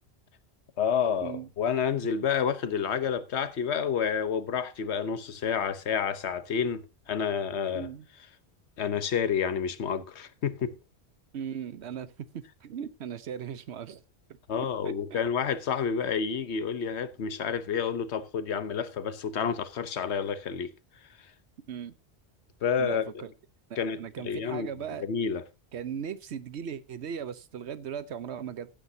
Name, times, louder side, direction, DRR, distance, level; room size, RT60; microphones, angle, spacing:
voice 1, 0.8-7.9 8.8-10.8 14.5-20.7 22.6-23.1 23.8-24.7 25.0-25.4, left 7 dB, 90° left, 1.2 m, -29 dB
voice 2, 7.7-8.1 11.3-14.0 14.3-15.2 21.7-22.0 22.8-23.3 23.7-25.1 25.7-28.7, right 8 dB, 85° right, 1.1 m, -38 dB
15.0 x 8.9 x 2.7 m
omnidirectional pair, 1.1 m